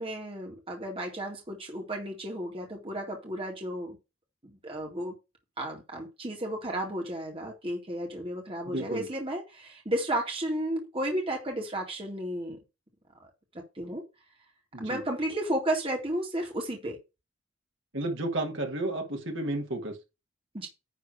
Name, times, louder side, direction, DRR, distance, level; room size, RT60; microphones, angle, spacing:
voice 1, 0.0-4.0 4.4-5.2 5.6-12.6 13.8-14.0 14.8-17.0 20.5-20.7, right 1 dB, 25° right, 2.0 m, -33 dB
voice 2, 8.7-9.1 14.7-15.0 17.9-20.0, right 1 dB, 55° right, 2.2 m, -32 dB
10.5 x 3.5 x 6.4 m
head